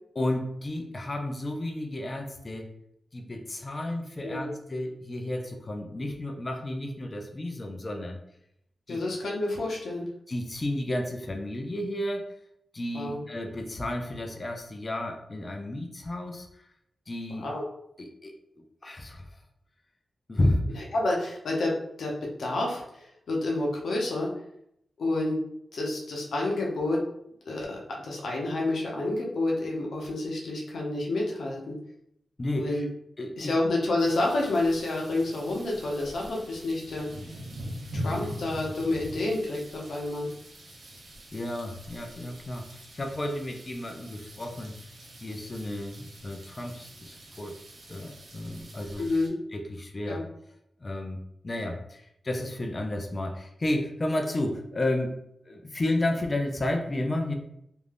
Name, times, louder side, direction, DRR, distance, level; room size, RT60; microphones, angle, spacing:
voice 1, 0.2-2.7 3.1-8.2 8.9-9.0 10.3-12.3 12.7-16.6 17.1-17.5 18.0-19.4 20.3-20.8 32.4-32.9 33.2-33.5 41.3-44.8 45.2-47.6 47.9-49.1 49.5-50.2 50.8-55.1 55.5-57.3, left 1 dB, 35° left, 3 dB, 0.4 m, -32 dB
voice 2, 8.9-10.1 12.9-13.2 17.4-17.6 20.9-22.1 22.4-24.3 25.0-25.4 25.7-27.0 27.5-31.8 32.6-32.9 33.4-37.1 37.9-40.3 49.0-49.3 50.1-50.2, left 2 dB, 85° left, -2 dB, 0.7 m, -29 dB
sound 1, 34.0-49.3, equal, 85° right, 0.8 m, -43 dB
2.5 x 2.2 x 3.3 m, 0.74 s
cardioid pair, 70°, 0 cm